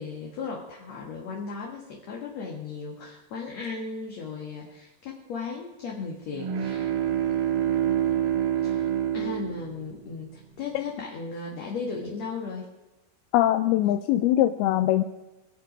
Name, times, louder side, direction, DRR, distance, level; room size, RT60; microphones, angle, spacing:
voice 1, 0.0-6.9 8.6-8.9 9.1-12.7, left 4 dB, 55° left, -1 dB, 2.4 m, -36 dB
sound 1, 6.3-10.4, right 10 dB, 85° right, 3.3 m, -27 dB
voice 2, 13.3-15.0, left 13 dB, 85° left, 8 dB, 2.5 m, -22 dB
24.5 x 8.2 x 5.1 m, 1.0 s
omnidirectional pair, 4.5 m